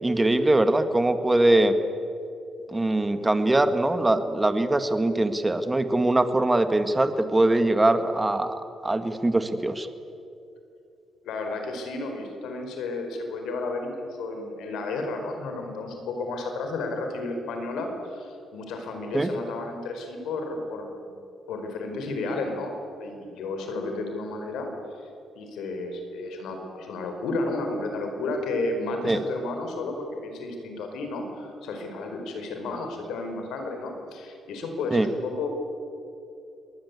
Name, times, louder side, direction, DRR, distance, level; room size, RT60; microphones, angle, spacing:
voice 1, 0.0-1.8 2.7-9.9 19.1-19.3 29.0-29.2 34.9-35.1, right 2 dB, 15° right, 8 dB, 1.8 m, -22 dB
voice 2, 11.2-20.9 21.5-22.7 23.0-25.1 25.3-35.5, left 2 dB, 85° left, 4 dB, 4.7 m, -32 dB
25.5 x 20.5 x 8.4 m, 2.7 s
cardioid pair, 90°, 0 cm